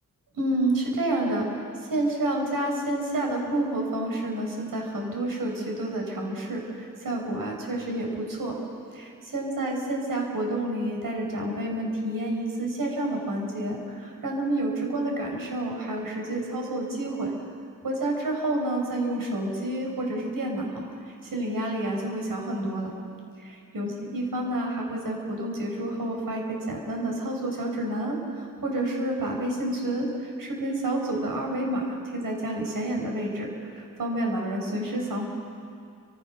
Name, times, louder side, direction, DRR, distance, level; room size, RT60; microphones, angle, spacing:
voice 1, 0.3-8.5 8.9-17.3 17.8-22.9 23.7-35.3, right 1 dB, 80° right, 0 dB, 6.6 m, -29 dB
29.5 x 26.5 x 6.8 m, 2.3 s
wide cardioid pair, 115°, 33 cm